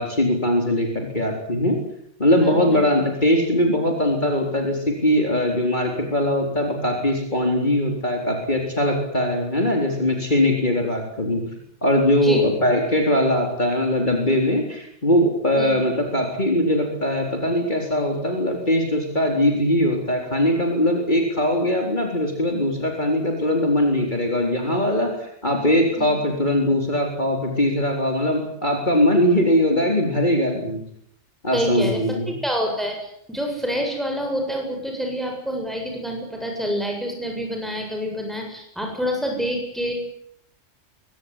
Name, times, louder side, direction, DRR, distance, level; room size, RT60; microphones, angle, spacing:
voice 1, 0.0-1.8 2.2-11.4 11.8-30.8 31.4-32.3, left 1 dB, 35° left, 2 dB, 4.4 m, -21 dB
voice 2, 2.4-2.8 12.2-12.5 15.6-15.7 26.0-26.1 31.5-39.9, equal, ahead, 2 dB, 7.3 m, -27 dB
23.0 x 18.0 x 9.9 m, 0.70 s
omnidirectional pair, 1.3 m